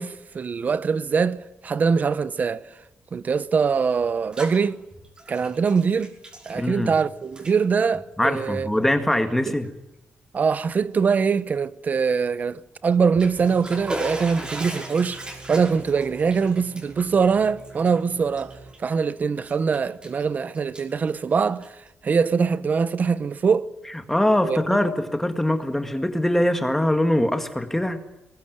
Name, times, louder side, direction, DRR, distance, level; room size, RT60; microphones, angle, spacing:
voice 1, 0.0-2.7 3.1-4.8 5.3-6.1 6.5-8.7 9.5-9.6 10.3-15.2 15.5-23.7 24.4-24.8, right 5 dB, 40° right, 1.0 m, -23 dB
Bathtub (filling or washing), 4.0-4.6 4.9-7.0 7.3-7.6 8.3-8.5 9.1-9.2 9.6-9.7 12.9-19.0 19.4-20.2 20.5-21.9, right 1 dB, 20° right, 5.5 m, -37 dB
voice 2, 6.6-6.9 8.2-9.7 24.1-28.0, left 1 dB, 5° left, 1.9 m, -22 dB
sound 1, 13.3-19.2, right 3 dB, 65° right, 6.8 m, -45 dB
22.5 x 21.0 x 9.4 m
wide cardioid pair, 130°, 4 cm